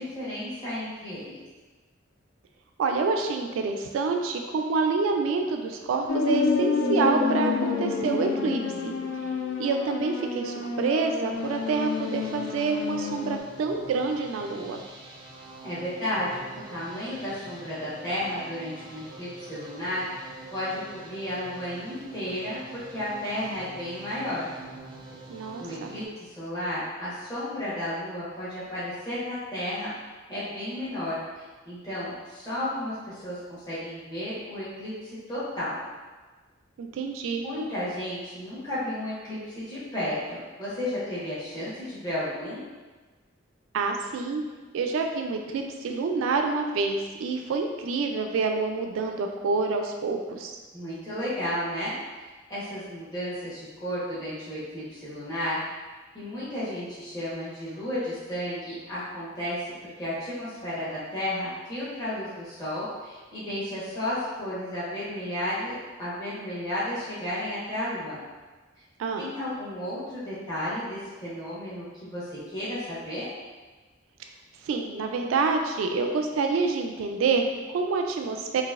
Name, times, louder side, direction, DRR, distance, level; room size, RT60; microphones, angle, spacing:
voice 1, 0.0-1.4 15.6-24.5 25.6-29.9 30.3-35.8 37.4-42.6 50.7-51.9 52.3-55.6 56.1-59.6 60.0-65.7 66.0-68.2 69.2-73.3, left 1 dB, 20° left, -12 dB, 1.1 m, -33 dB
voice 2, 2.8-8.9 9.6-14.8 25.3-25.9 36.8-37.4 43.7-44.4 44.7-50.6 69.0-69.3 74.6-78.6, right 4 dB, 90° right, 4 dB, 0.3 m, -27 dB
sound 1, 6.1-13.4, left 4 dB, 70° left, 0.3 m, -28 dB
sound 2, 11.3-26.1, right 3 dB, 25° right, 0.4 m, -45 dB
3.9 x 2.5 x 2.4 m, 1.3 s
head